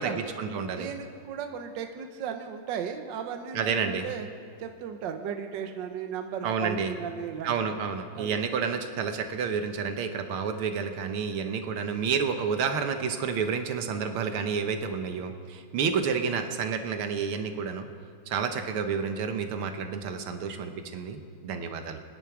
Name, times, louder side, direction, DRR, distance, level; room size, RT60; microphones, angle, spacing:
voice 1, 0.0-0.9 3.5-4.1 6.4-6.9 7.4-17.9 18.3-22.0, right 6 dB, 85° right, 7 dB, 1.9 m, -30 dB
voice 2, 0.7-4.3 4.6-7.9 8.2-8.4, right 7 dB, 65° right, 6 dB, 1.5 m, -36 dB
23.5 x 10.5 x 4.7 m, 2.1 s
omnidirectional pair, 2.3 m